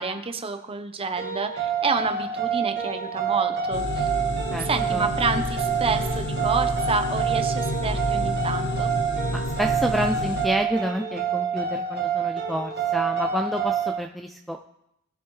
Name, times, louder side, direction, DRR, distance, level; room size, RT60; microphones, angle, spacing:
voice 1, 0.0-4.1 4.6-8.9, right 4 dB, 25° right, 7 dB, 0.8 m, -29 dB
sound 1, 1.2-14.0, right 7 dB, 50° right, 1.7 m, -27 dB
sound 2, 3.7-10.5, left 1 dB, 55° left, 1.1 m, -29 dB
voice 2, 4.5-5.1 9.3-14.7, equal, ahead, 5 dB, 0.4 m, -29 dB
19.0 x 6.9 x 3.2 m, 0.81 s
head